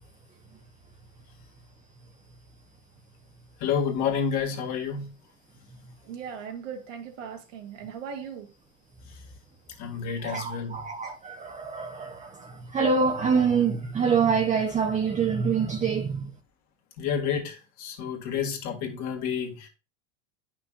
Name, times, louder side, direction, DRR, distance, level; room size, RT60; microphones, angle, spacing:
voice 1, 3.6-5.1 5.6-5.7 9.1-9.2 9.8-10.9 17.0-19.7, left 7 dB, 50° left, 2.1 m, -30 dB
voice 2, 6.0-8.5, right 7 dB, 75° right, 1.9 m, -39 dB
voice 3, 10.2-16.3, right 5 dB, 20° right, 0.7 m, -26 dB
9.7 x 5.9 x 2.4 m
hypercardioid pair, 100°, 38 cm